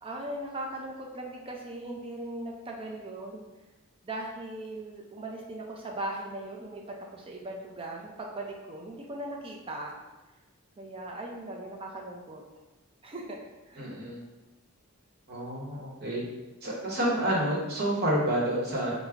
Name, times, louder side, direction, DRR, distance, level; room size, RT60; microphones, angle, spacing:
voice 1, 0.0-3.4 4.0-6.8 7.1-9.9 10.8-12.4 13.0-13.4 13.7-13.9, right 1 dB, 25° right, 0 dB, 0.4 m, -39 dB
voice 2, 13.8-14.2 15.3-16.2 16.6-18.9, right 1 dB, 45° right, -4 dB, 0.9 m, -29 dB
3.5 x 2.0 x 3.4 m, 1.1 s
head